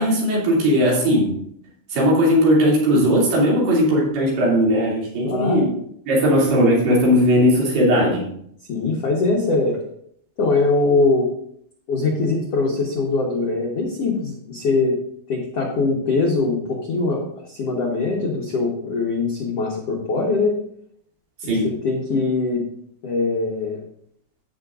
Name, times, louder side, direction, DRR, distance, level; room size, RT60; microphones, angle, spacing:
voice 1, 0.0-1.4 1.9-5.7 6.1-8.3 21.4-21.7, equal, 65° right, -5 dB, 4.8 m, -18 dB
voice 2, 5.2-5.6 8.7-9.8 10.4-11.3 11.9-15.0 15.3-20.5 21.4-22.6 23.0-23.8, left 3 dB, 80° left, -2 dB, 1.4 m, -22 dB
16.5 x 6.9 x 2.5 m, 0.69 s
omnidirectional pair, 5.1 m